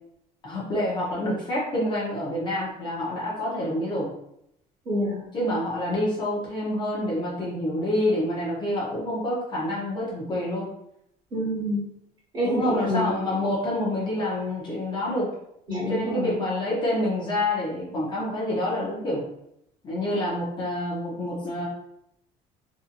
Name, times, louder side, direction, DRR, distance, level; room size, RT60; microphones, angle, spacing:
voice 1, 0.4-4.1 5.3-10.7 12.4-15.3 15.9-19.2 19.8-21.7, left 1 dB, 30° left, -6 dB, 0.6 m, -27 dB
voice 2, 4.8-5.2 11.3-11.8 12.3-13.1 15.7-16.3, left 1 dB, 30° right, -6 dB, 1.2 m, -27 dB
2.6 x 2.5 x 2.5 m, 0.77 s
cardioid pair, 180°, 16 cm